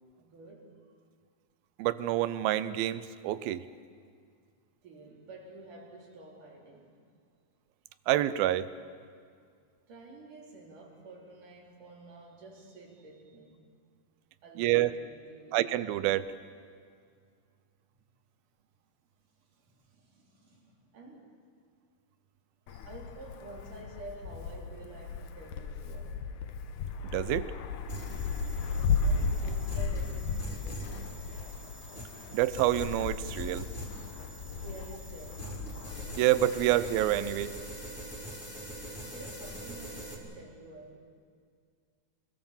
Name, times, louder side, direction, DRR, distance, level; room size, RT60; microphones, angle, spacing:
voice 1, 0.2-0.9 4.8-7.0 9.9-13.6 14.4-15.6 19.5-21.3 22.7-26.2 28.6-31.2 34.5-35.9 39.0-41.0, right 2 dB, 55° right, -1 dB, 4.9 m, -50 dB
voice 2, 1.8-3.7 8.1-8.7 14.6-14.9 15.5-16.3 27.1-27.5 32.3-33.7 36.2-37.5, right 13 dB, 80° right, 14 dB, 2.5 m, -27 dB
Wind, 22.7-37.6, left 4 dB, 65° left, 2.2 m, -35 dB
sound 1, 27.9-40.1, right 1 dB, 15° left, 3.6 m, -43 dB
27.5 x 21.0 x 7.3 m, 2.1 s
omnidirectional pair, 4.4 m